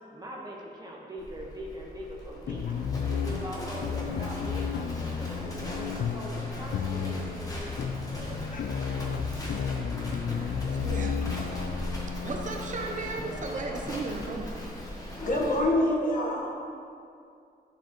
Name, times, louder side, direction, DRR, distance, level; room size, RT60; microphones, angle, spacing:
voice 1, 0.1-2.7 3.1-8.5 12.3-12.4, equal, 25° right, -3 dB, 1.2 m, -42 dB
Livestock farm animals working animals, 1.2-15.6, equal, 20° left, 1.2 m, -39 dB
sound 1, 2.5-15.3, left 6 dB, 80° left, 0.4 m, -33 dB
voice 2, 10.2-11.2 11.5-11.6 12.1-14.5, right 3 dB, 50° right, 1 dB, 0.7 m, -36 dB
voice 3, 15.2-16.5, left 1 dB, 55° left, -1 dB, 1.2 m, -26 dB
11.0 x 6.8 x 3.0 m, 2.4 s
wide cardioid pair, 165°, 17 cm